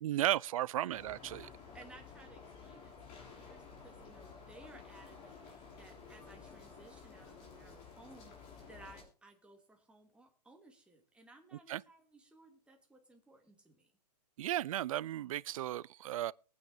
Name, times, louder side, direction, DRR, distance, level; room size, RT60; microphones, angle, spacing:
voice 1, 0.0-1.5 11.7-11.8 14.4-16.3, right 13 dB, 55° right, 0.5 m, -35 dB
sound 1, 0.9-9.0, left 5 dB, 35° left, 6.0 m, -53 dB
voice 2, 1.4-13.9, right 2 dB, 5° right, 2.9 m, -59 dB
22.0 x 9.5 x 2.8 m
hypercardioid pair, 135°, 21 cm